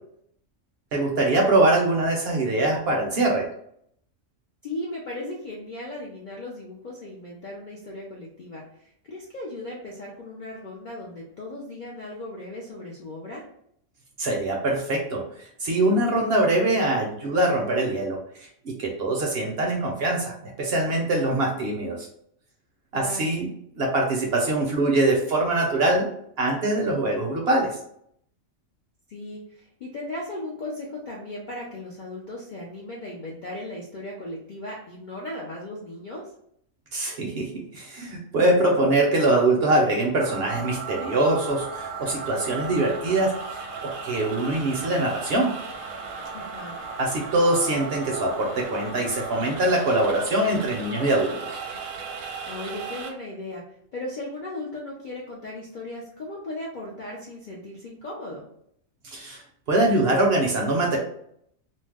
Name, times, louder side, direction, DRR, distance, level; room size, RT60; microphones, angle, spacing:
voice 1, 0.9-3.5 14.2-15.3 15.6-22.1 22.9-23.5 23.8-26.1 26.4-27.8 36.9-45.5 47.0-51.6 59.0-59.4 59.7-61.0, right 2 dB, 60° right, 0 dB, 0.7 m, -23 dB
voice 2, 4.6-13.5 21.5-21.9 22.9-23.3 29.1-36.3 46.3-46.8 52.5-53.6 53.9-58.4, left 1 dB, 60° left, -3 dB, 0.5 m, -37 dB
sound 1, 40.2-53.1, right 4 dB, 80° right, 1.0 m, -36 dB
2.5 x 2.0 x 3.4 m, 0.69 s
omnidirectional pair, 1.4 m